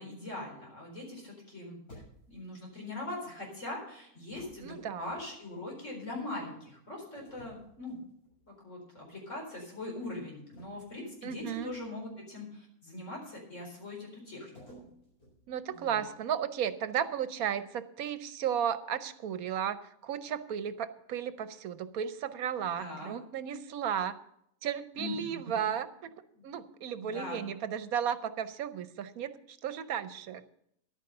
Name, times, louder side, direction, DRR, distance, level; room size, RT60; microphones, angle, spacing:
voice 1, 0.0-2.0 2.3-8.0 8.6-14.5 15.7-16.0 22.6-23.1 25.0-25.6 26.3-26.4 27.0-27.4, left 2 dB, 55° left, -1 dB, 4.7 m, -41 dB
sound 1, 1.9-2.5 4.3-5.6 7.1-8.5 8.9-9.2 10.5-12.0 14.5-16.2, equal, 90° left, 7.7 m, -55 dB
voice 2, 4.6-5.1 11.2-11.7 15.5-24.2 24.6-26.1 26.4-30.4, right 8 dB, 80° right, 12 dB, 1.2 m, -34 dB
11.5 x 9.2 x 6.7 m, 0.74 s
omnidirectional pair, 1.5 m